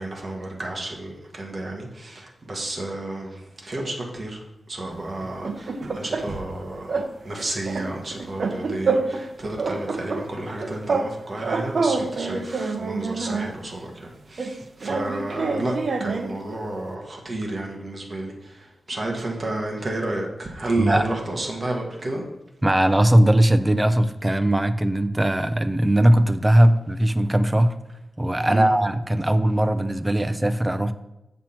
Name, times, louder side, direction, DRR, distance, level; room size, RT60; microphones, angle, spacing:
voice 1, 0.0-15.7 16.0-22.2 28.5-28.7, right 2 dB, 30° right, 0 dB, 1.3 m, -31 dB
sound 1, 5.2-6.6 6.9-7.1 7.4-9.3 9.6-11.1 11.4-13.6 14.4-16.4, right 4 dB, 50° right, 0.6 m, -27 dB
voice 2, 22.6-27.8 28.2-30.9, right 1 dB, 10° right, 11 dB, 0.4 m, -19 dB
7.1 x 6.0 x 4.4 m, 0.91 s
wide cardioid pair, 160°, 0 cm